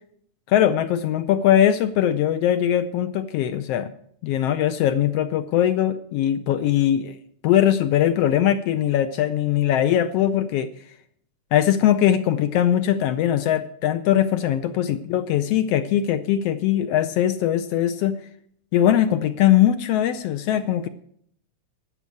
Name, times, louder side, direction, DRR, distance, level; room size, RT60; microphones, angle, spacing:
voice 1, 0.5-3.9 4.2-7.2 7.4-10.7 11.5-18.2 18.7-20.9, left 11 dB, 80° left, 9 dB, 1.4 m, -21 dB
12.0 x 7.4 x 8.3 m, 0.67 s
omnidirectional pair, 3.4 m